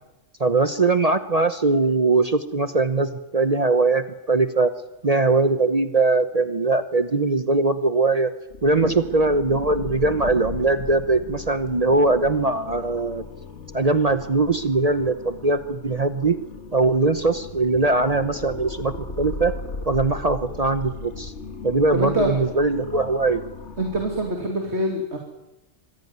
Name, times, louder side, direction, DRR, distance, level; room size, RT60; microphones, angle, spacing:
voice 1, 0.4-4.7 5.0-8.3 8.6-13.2 13.7-16.4 16.7-19.5 19.9-21.3 21.6-23.4, right 3 dB, 35° right, 10 dB, 1.0 m, -21 dB
sound 1, 8.5-24.3, left 4 dB, 75° left, 2.2 m, -37 dB
voice 2, 21.9-22.3 23.8-25.2, right 1 dB, 65° right, 2 dB, 3.1 m, -25 dB
25.5 x 16.0 x 9.5 m, 0.99 s
omnidirectional pair, 1.2 m